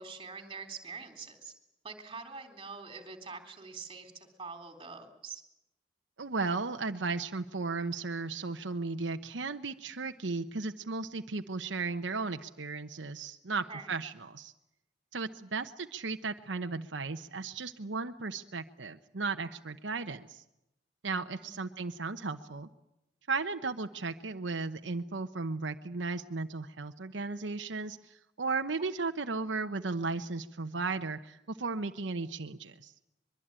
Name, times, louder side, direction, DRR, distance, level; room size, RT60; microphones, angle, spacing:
voice 1, 0.0-1.5 1.8-5.4 13.6-13.9 21.4-21.5, right 4 dB, 25° right, 7 dB, 3.8 m, -45 dB
voice 2, 6.2-14.5 15.1-20.4 21.0-22.7 23.3-32.9, right 4 dB, 75° right, 7 dB, 1.0 m, -35 dB
23.5 x 23.0 x 9.0 m, 0.85 s
head